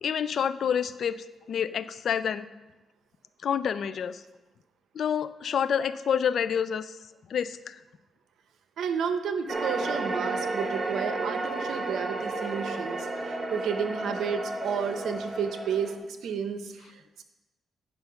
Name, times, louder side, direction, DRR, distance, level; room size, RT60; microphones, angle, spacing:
voice 1, 0.0-2.5 3.4-4.2 4.9-7.0 7.3-7.8, left 8 dB, 65° left, 14 dB, 0.4 m, -28 dB
voice 2, 8.8-17.2, right 6 dB, 80° right, 8 dB, 0.8 m, -32 dB
sound 1, 9.5-16.0, right 2 dB, 25° right, 1.1 m, -32 dB
9.6 x 5.5 x 5.7 m, 1.1 s
cardioid pair, 95°, 0 cm